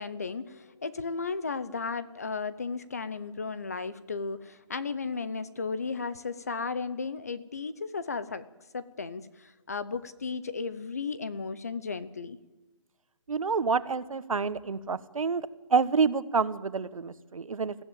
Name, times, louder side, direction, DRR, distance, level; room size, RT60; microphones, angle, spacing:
voice 1, 0.0-8.4 8.7-12.4, left 4 dB, 30° left, 14 dB, 0.7 m, -35 dB
voice 2, 13.3-17.8, right 5 dB, 80° right, 15 dB, 1.3 m, -28 dB
21.0 x 15.0 x 9.0 m, 1.1 s
hypercardioid pair, 180°, 17 cm